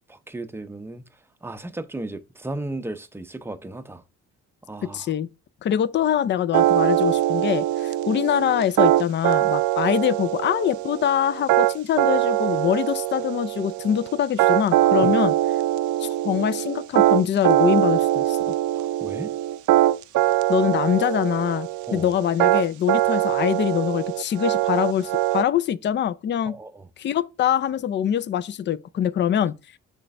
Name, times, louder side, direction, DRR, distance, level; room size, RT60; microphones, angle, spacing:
voice 1, 0.1-1.0 1.4-4.0 4.7-5.1 15.0-15.1 18.8-19.3 21.9-22.1 26.4-26.9, right 2 dB, 10° right, 0.6 m, -35 dB
voice 2, 4.9-5.3 5.6-15.3 16.0-18.5 20.5-26.6 27.0-29.5, left 10 dB, 40° left, 0.4 m, -24 dB
sound 1, 6.5-25.4, right 14 dB, 75° right, 0.5 m, -22 dB
6.3 x 3.3 x 4.6 m
cardioid pair, 90°, 30 cm